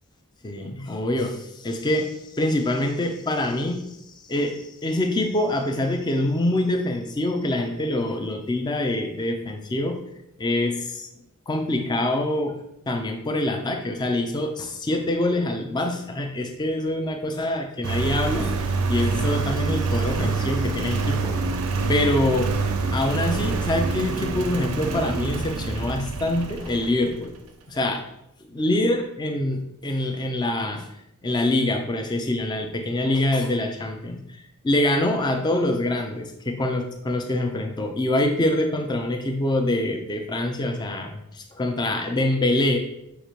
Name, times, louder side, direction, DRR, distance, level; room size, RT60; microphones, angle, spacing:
voice 1, 0.4-3.8 4.3-10.0 10.4-11.1 11.5-12.6 12.9-18.5 18.9-21.4 21.9-22.5 22.9-27.3 27.7-28.0 28.5-30.9 31.2-42.8, left 1 dB, 20° left, 4 dB, 0.4 m, -25 dB
Engine, 17.8-27.3, right 4 dB, 75° right, 0.4 m, -26 dB
6.5 x 2.4 x 3.0 m, 0.81 s
head